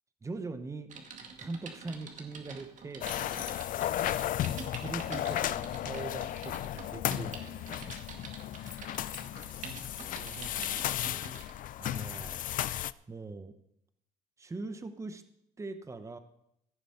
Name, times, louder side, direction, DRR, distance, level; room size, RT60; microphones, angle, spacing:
voice 1, 0.2-0.9 1.4-3.5 4.4-8.0 11.8-12.5 13.1-13.5 14.4-15.2 15.6-16.2, right 3 dB, 15° right, 10 dB, 0.9 m, -42 dB
Typing, 0.9-11.6 12.2-12.4, right 5 dB, 50° right, 1.9 m, -47 dB
sound 1, 3.0-12.9, left 12 dB, 55° left, 0.4 m, -34 dB
voice 2, 3.9-4.3 9.3-11.4, right 9 dB, 65° right, 11 dB, 1.1 m, -52 dB
15.5 x 7.0 x 5.5 m, 0.78 s
cardioid pair, 110°, 17 cm